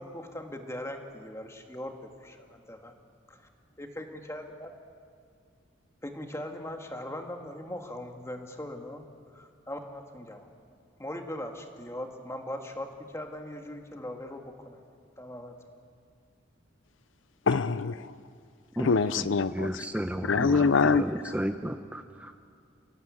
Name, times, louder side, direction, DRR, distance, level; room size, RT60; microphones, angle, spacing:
voice 1, 0.0-3.0 3.3-3.5 3.8-4.7 6.0-9.1 9.3-10.5 11.0-14.8 15.2-15.6, left 1 dB, 15° left, 4 dB, 1.9 m, -40 dB
voice 2, 17.5-18.1 18.8-19.8 20.3-21.0, left 4 dB, 80° left, 15 dB, 0.6 m, -24 dB
voice 3, 18.8-22.3, equal, 5° right, 7 dB, 0.7 m, -33 dB
29.0 x 17.0 x 8.6 m, 2.3 s
head